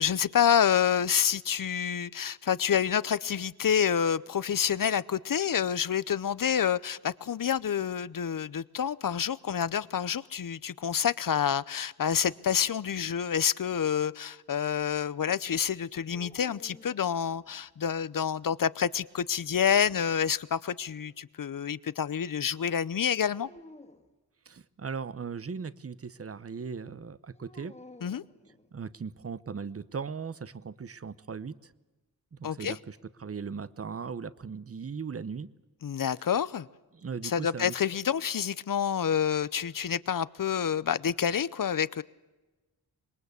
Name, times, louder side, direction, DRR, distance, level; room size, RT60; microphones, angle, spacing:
voice 1, 0.0-23.5 28.0-28.2 32.4-32.8 35.8-36.7 37.2-42.0, left 8 dB, 60° left, 18 dB, 0.7 m, -28 dB
sound 1, 16.1-17.7 19.3-20.4 23.3-24.1 27.3-29.0, left 2 dB, 15° left, 2.1 m, -53 dB
voice 2, 24.5-27.7 28.7-31.7 32.3-35.5 36.9-37.7, right 5 dB, 40° right, 17 dB, 0.9 m, -38 dB
26.0 x 22.0 x 8.3 m, 1.2 s
wide cardioid pair, 125°, 37 cm